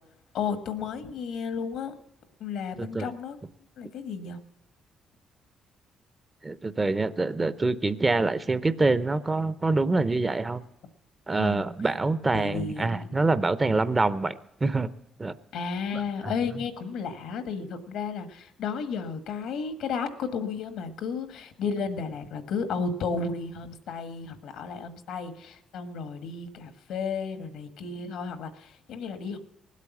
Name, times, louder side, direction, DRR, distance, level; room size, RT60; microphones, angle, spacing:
voice 1, 0.3-1.9 2.4-3.4 3.8-4.4 11.4-11.7 12.3-13.1 15.5-29.4, left 5 dB, 85° left, 10 dB, 1.4 m, -33 dB
voice 2, 2.8-3.1 6.4-10.6 11.3-14.9 15.2-15.3 15.9-16.0, right 3 dB, 25° right, 15 dB, 0.7 m, -25 dB
19.0 x 8.3 x 7.1 m, 0.88 s
cardioid pair, 90°, 0 cm